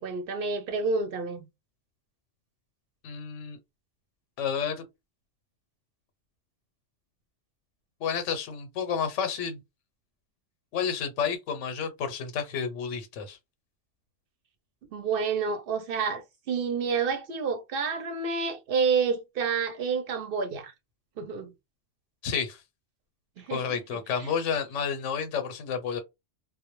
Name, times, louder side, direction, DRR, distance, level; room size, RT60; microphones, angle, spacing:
voice 1, 0.0-1.5 14.9-20.7 21.2-21.5 23.4-23.6 23.9-24.0, right 5 dB, 60° right, 0.7 m, -29 dB
voice 2, 3.0-3.6 4.4-4.8 8.0-9.6 10.7-13.4 22.2-22.6 23.5-26.0, left 7 dB, 90° left, 1.0 m, -30 dB
2.2 x 2.1 x 2.9 m
omnidirectional pair, 1.2 m